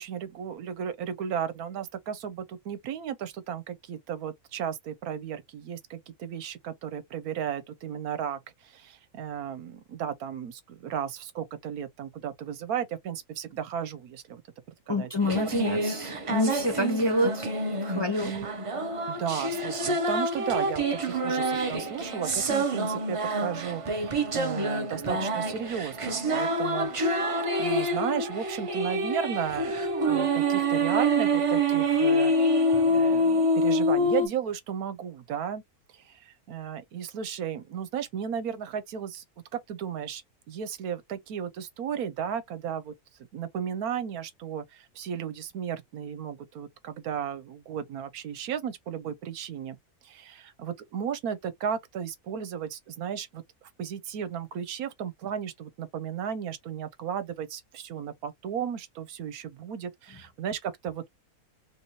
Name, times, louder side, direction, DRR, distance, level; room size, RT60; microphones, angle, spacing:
voice 1, 0.0-14.4 14.9-15.1 18.2-18.5 19.1-26.9 27.6-29.8 30.1-35.6 35.9-39.2 39.5-40.2 40.5-42.9 43.3-49.8 50.0-53.4 53.8-61.1, right 8 dB, 80° right, 1.1 m, -34 dB
voice 2, 14.9-17.5 17.8-18.3, left 1 dB, 20° left, 0.8 m, -27 dB
sound 1, 15.2-34.3, right 1 dB, 55° right, 0.3 m, -27 dB
3.3 x 3.0 x 2.7 m
omnidirectional pair, 1.6 m